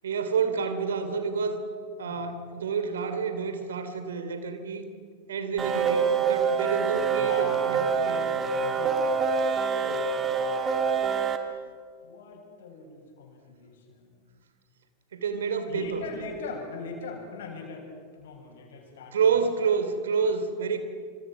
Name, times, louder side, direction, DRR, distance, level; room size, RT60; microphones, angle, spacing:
voice 1, 0.0-1.6 2.0-4.8 5.3-8.2 9.8-10.1 15.1-16.0 19.1-20.8, right 5 dB, 65° right, 9 dB, 3.2 m, -29 dB
sound 1, 5.6-11.4, right 6 dB, 20° right, 2.5 m, -26 dB
voice 2, 7.2-9.3 9.9-10.6 11.0-11.1 12.0-14.4 15.7-19.2, left 4 dB, 60° left, 1 dB, 7.4 m, -41 dB
28.0 x 26.0 x 6.1 m, 2.1 s
figure-of-eight pair, 90°, 0 cm